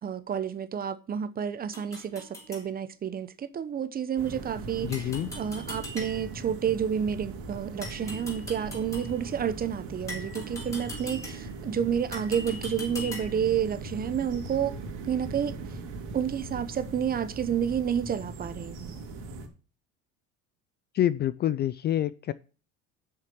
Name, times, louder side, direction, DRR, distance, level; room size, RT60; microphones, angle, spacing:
voice 1, 0.0-5.1 5.4-14.7 15.0-15.5 16.1-18.9, right 8 dB, 30° right, 0.9 m, -30 dB
sound 1, 1.7-2.7 4.9-6.5 7.8-9.2 10.1-11.6 12.1-13.5, left 1 dB, 10° left, 4.4 m, -41 dB
sound 2, 4.2-19.5, right 3 dB, 75° right, 2.9 m, -40 dB
voice 2, 4.8-5.3 20.9-22.3, left 12 dB, 35° left, 0.4 m, -27 dB
7.7 x 6.6 x 7.1 m
cardioid pair, 125°, 31 cm